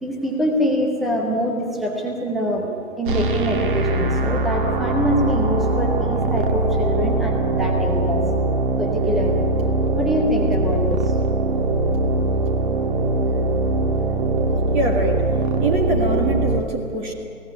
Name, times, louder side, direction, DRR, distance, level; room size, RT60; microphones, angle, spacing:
voice 1, 0.0-2.7 3.0-8.2 8.8-9.5 9.9-11.0 14.5-14.6, equal, ahead, 0 dB, 0.7 m, -24 dB
sound 1, 3.1-16.6, right 2 dB, 35° right, 1.6 m, -21 dB
voice 2, 14.7-15.2 15.6-17.1, right 3 dB, 15° right, 3 dB, 1.8 m, -23 dB
22.5 x 17.0 x 9.9 m, 2.7 s
figure-of-eight pair, 145°, 42 cm